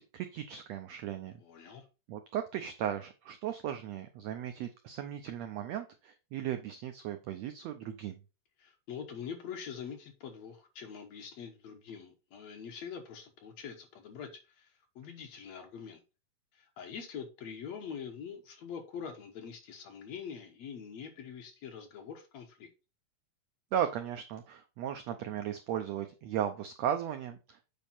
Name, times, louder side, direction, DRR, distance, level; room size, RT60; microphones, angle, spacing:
voice 1, 0.0-1.7 2.1-8.2 23.7-27.7, right 10 dB, 85° right, 7 dB, 1.5 m, -36 dB
voice 2, 1.4-1.8 8.6-16.0 16.5-22.7, left 7 dB, 65° left, 4 dB, 2.1 m, -44 dB
7.4 x 5.3 x 4.2 m, 0.30 s
omnidirectional pair, 3.9 m